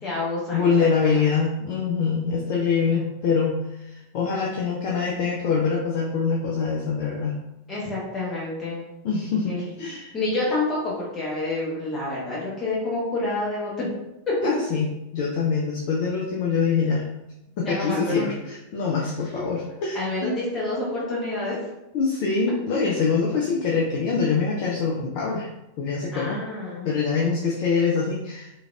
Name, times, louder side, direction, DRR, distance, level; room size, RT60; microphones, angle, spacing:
voice 1, 0.0-0.7 1.1-1.2 2.9-3.0 7.7-8.8 9.5-9.6 10.1-13.9 14.3-14.4 17.6-18.3 19.3-19.4 19.9-21.6 26.1-26.9, left 2 dB, 20° left, -6 dB, 0.9 m, -28 dB
voice 2, 0.5-7.4 9.0-10.1 14.4-17.1 17.6-20.4 21.9-25.5 25.8-26.4 26.8-28.5, left 5 dB, 45° left, -3 dB, 0.4 m, -24 dB
3.2 x 2.4 x 2.3 m, 0.92 s
figure-of-eight pair, 90°, 0 cm